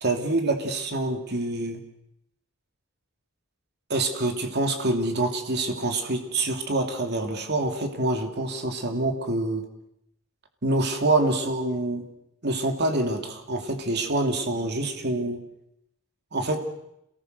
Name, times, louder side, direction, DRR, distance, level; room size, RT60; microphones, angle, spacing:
voice 1, 0.0-1.8 3.9-9.6 10.6-12.0 12.4-15.4 16.3-16.6, right 2 dB, 55° right, 4 dB, 2.8 m, -26 dB
28.0 x 19.0 x 6.7 m, 0.80 s
head